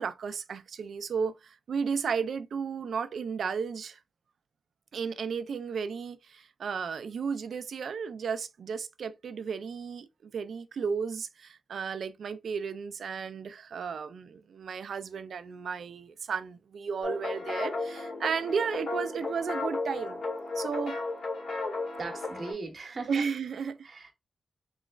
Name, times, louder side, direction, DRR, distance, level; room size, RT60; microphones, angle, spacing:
voice 1, 0.0-4.0 4.9-20.2 20.6-21.0 23.1-23.8, right 6 dB, 75° right, 0.3 m, -34 dB
sound 1, 17.0-22.5, left 3 dB, 75° left, 1.6 m, -34 dB
voice 2, 22.0-23.2 23.8-24.1, right 3 dB, 45° right, 0.8 m, -38 dB
3.1 x 3.1 x 2.4 m
wide cardioid pair, 150°, 0 cm